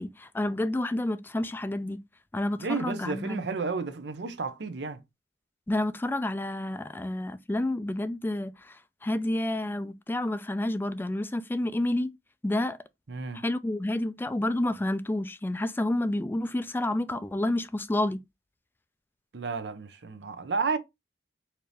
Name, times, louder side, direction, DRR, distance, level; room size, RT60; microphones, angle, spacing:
voice 1, 0.0-2.0 2.3-3.4 5.7-8.5 9.0-12.1 12.4-12.8 13.4-18.2, left 1 dB, 10° left, 0.3 m, -29 dB
voice 2, 2.6-5.0 13.1-13.5 19.3-20.8, right 4 dB, 80° right, 0.7 m, -32 dB
4.4 x 2.6 x 3.3 m
head